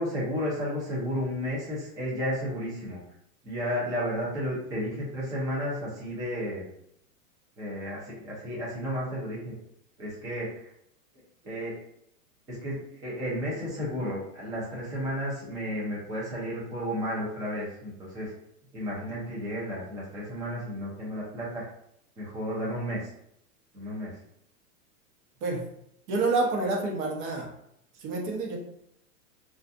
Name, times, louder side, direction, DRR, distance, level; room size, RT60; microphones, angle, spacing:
voice 1, 0.0-3.0 3.4-6.6 7.6-9.5 10.0-10.7 11.4-11.8 12.5-18.3 18.7-21.7 22.2-23.1 23.7-24.2, equal, 10° right, -7 dB, 0.4 m, -32 dB
voice 2, 26.1-27.5 28.0-28.6, right 3 dB, 45° right, 0 dB, 0.8 m, -28 dB
2.5 x 2.4 x 2.4 m, 0.74 s
hypercardioid pair, 135°, 47 cm